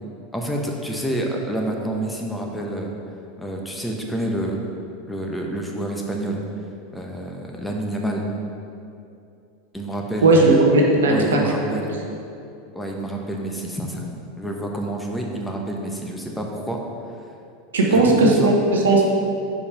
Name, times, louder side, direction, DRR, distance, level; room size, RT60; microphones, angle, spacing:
voice 1, 0.3-2.9 3.4-4.6 5.1-6.4 6.9-8.2 9.7-10.5 11.0-11.9 12.7-16.8 17.9-18.5, right 1 dB, 5° left, 0 dB, 1.0 m, -28 dB
voice 2, 10.2-11.4 17.7-19.0, right 2 dB, 85° right, -1 dB, 1.0 m, -16 dB
5.1 x 4.8 x 5.7 m, 2.6 s
hypercardioid pair, 95°, 0 cm